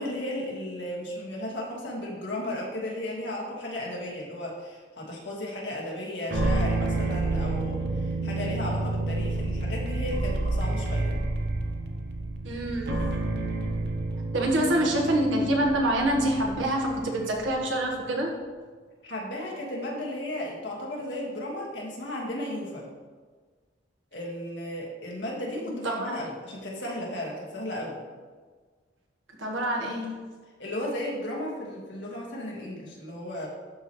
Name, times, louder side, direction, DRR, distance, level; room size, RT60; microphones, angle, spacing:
voice 1, 0.0-11.2 19.0-22.9 24.1-28.0 30.6-33.5, left 1 dB, 65° left, -3 dB, 1.7 m, -34 dB
sound 1, 6.3-17.7, right 2 dB, 60° right, 0.8 m, -29 dB
voice 2, 12.4-13.1 14.3-18.3 25.8-26.1 29.4-30.3, right 1 dB, 90° right, 0 dB, 1.4 m, -26 dB
12.0 x 4.4 x 3.1 m, 1.5 s
head